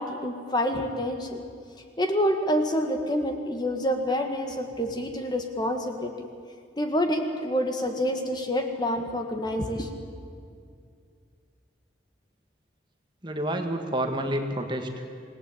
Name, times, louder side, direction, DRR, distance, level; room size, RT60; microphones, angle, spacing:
voice 1, 0.0-1.4 2.0-6.1 6.8-9.9, equal, 20° left, 5 dB, 1.7 m, -27 dB
voice 2, 13.2-15.1, right 1 dB, 25° right, 4 dB, 1.8 m, -29 dB
27.0 x 18.5 x 8.7 m, 2.3 s
head